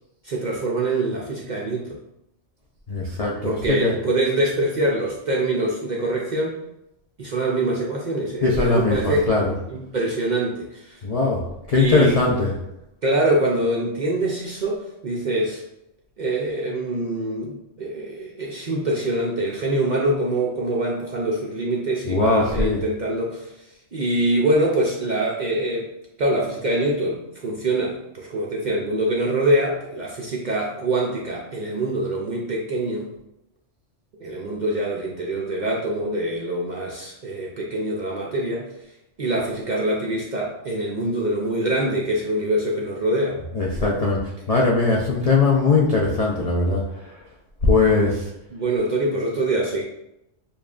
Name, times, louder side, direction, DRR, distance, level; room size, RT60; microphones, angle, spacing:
voice 1, 0.2-2.0 3.4-6.6 7.2-9.3 9.7-11.0 11.7-12.2 13.0-15.6 16.2-23.5 23.9-25.9 26.2-33.1 34.2-38.7 39.2-43.4 48.5-49.8, right 1 dB, 55° right, -3 dB, 0.5 m, -24 dB
voice 2, 2.9-3.9 8.4-9.5 11.0-11.4 11.7-12.5 22.1-22.8 43.5-44.2 44.5-46.8 47.6-48.2, left 3 dB, 55° left, -3 dB, 0.4 m, -20 dB
6.9 x 2.3 x 2.4 m, 0.86 s
omnidirectional pair, 1.3 m